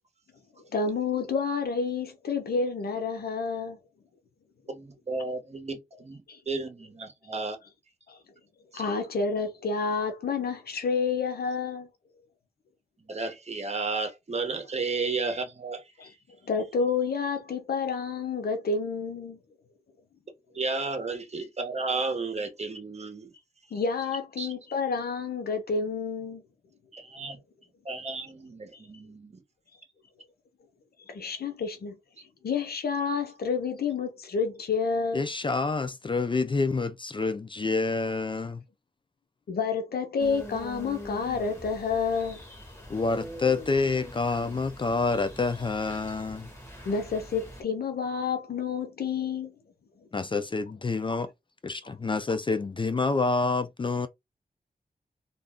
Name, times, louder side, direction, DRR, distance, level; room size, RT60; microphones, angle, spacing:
voice 1, 0.7-3.8 6.3-6.4 8.1-8.2 8.7-11.9 16.0-16.1 16.5-19.4 23.7-26.4 28.7-28.8 31.1-32.0 32.4-35.2 39.5-42.4 46.8-49.5 51.8-51.9, left 5 dB, 80° left, 0.7 m, -29 dB
voice 2, 4.7-7.6 8.7-8.8 13.1-15.8 20.5-23.3 24.4-24.5 26.9-27.4 27.8-29.4, right 3 dB, 45° right, 0.9 m, -33 dB
voice 3, 35.1-38.6 42.9-46.5 50.1-51.3 51.6-54.1, left 3 dB, 30° left, 0.4 m, -28 dB
sound 1, 40.2-47.6, equal, 15° left, 1.4 m, -43 dB
2.4 x 2.2 x 3.5 m
cardioid pair, 45°, 16 cm